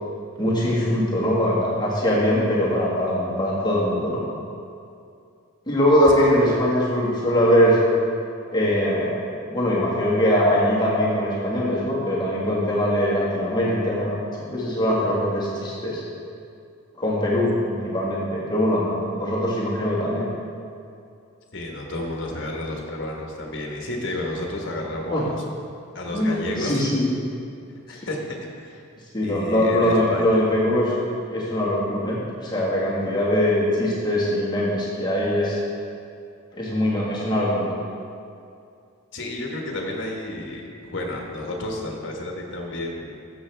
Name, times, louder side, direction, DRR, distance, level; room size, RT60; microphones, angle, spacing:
voice 1, 0.4-4.2 5.7-7.8 8.5-9.1 9.5-16.0 17.0-20.3 25.1-25.2 26.1-27.0 27.9-28.0 29.1-31.0 31.3-35.6 36.6-37.7, equal, 20° left, -6 dB, 1.7 m, -22 dB
voice 2, 21.5-25.4 25.9-26.9 27.9-28.8 29.2-30.4 39.1-43.2, left 1 dB, 55° left, 0 dB, 1.4 m, -31 dB
12.5 x 7.5 x 3.5 m, 2.5 s
head